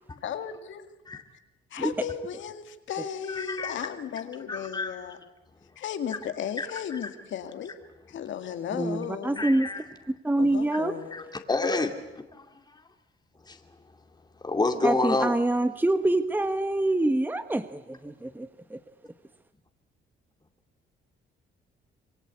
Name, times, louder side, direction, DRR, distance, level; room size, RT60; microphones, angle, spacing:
voice 1, 0.2-0.9 1.7-5.2 5.8-7.7 8.1-9.4 10.4-11.3, left 8 dB, 70° left, 8 dB, 2.2 m, -35 dB
voice 2, 3.3-3.7 4.5-5.0 6.9-7.0 9.4-9.8 11.1-11.9 13.5-13.6 14.4-15.3, left 3 dB, 20° left, 4 dB, 2.5 m, -28 dB
voice 3, 8.8-9.7 10.2-10.9 14.8-18.8, right 1 dB, 10° right, 10 dB, 1.1 m, -26 dB
27.0 x 22.5 x 8.4 m, 1.0 s
cardioid pair, 90°, 20 cm